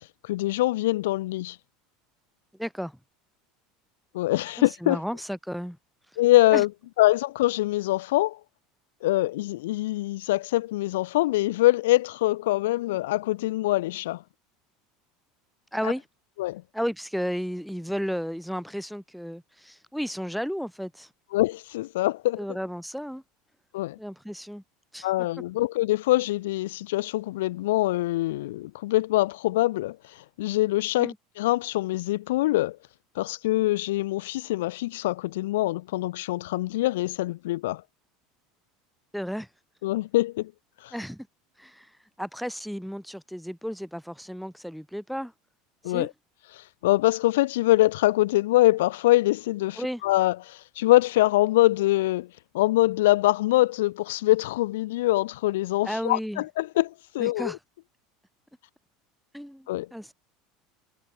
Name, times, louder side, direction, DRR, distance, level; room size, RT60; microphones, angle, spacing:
voice 1, 0.2-1.6 4.1-5.0 6.2-6.7 7.0-8.4 9.0-14.2 16.4-16.6 21.3-22.4 23.7-24.0 25.0-32.8 33.2-37.8 39.8-40.5 40.8-40.9 45.8-46.1 46.5-52.3 52.5-57.5 59.7-59.9, left 17 dB, 90° left, 1.7 m, -24 dB
voice 2, 2.6-3.0 4.8-5.8 6.5-6.6 15.7-16.1 16.7-21.1 22.4-23.2 24.0-24.6 24.9-25.1 31.0-31.2 39.1-39.5 40.9-41.3 41.6-45.3 45.8-46.1 49.8-50.0 55.8-56.4 57.2-57.6 59.3-60.1, equal, ahead, 5.1 m, -33 dB
supercardioid pair, 130°, 0 cm